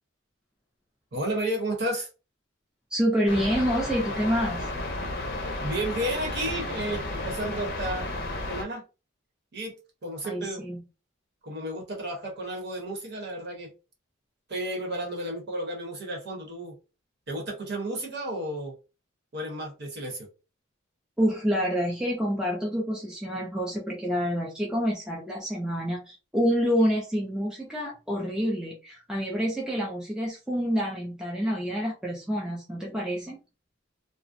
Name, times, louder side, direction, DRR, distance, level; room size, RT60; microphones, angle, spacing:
voice 1, 1.1-2.1 5.6-8.1 8.5-8.8 9.5-9.7 10.0-10.6 11.4-13.7 14.5-16.8 17.3-18.7 19.3-20.3, right 1 dB, 50° right, 0 dB, 0.9 m, -32 dB
voice 2, 2.9-4.7 10.2-10.8 21.2-33.4, equal, 5° right, -2 dB, 0.4 m, -27 dB
sound 1, 3.3-8.7, left 2 dB, 50° left, 0.5 m, -33 dB
2.4 x 2.0 x 2.5 m, 0.30 s
head